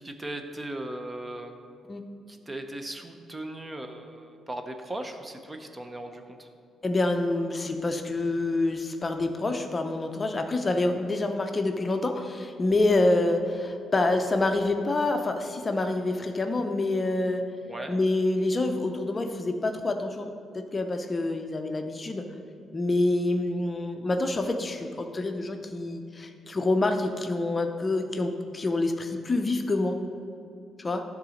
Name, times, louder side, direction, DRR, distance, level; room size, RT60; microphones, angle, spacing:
voice 1, 0.0-1.6 2.3-6.5 17.7-18.0, right 1 dB, 20° right, 6 dB, 0.8 m, -38 dB
voice 2, 6.8-17.4 17.9-20.3 20.5-22.3 22.7-29.9 30.8-31.0, left 2 dB, 25° left, 5 dB, 0.6 m, -27 dB
10.5 x 3.9 x 6.4 m, 2.6 s
cardioid pair, 90°, 0 cm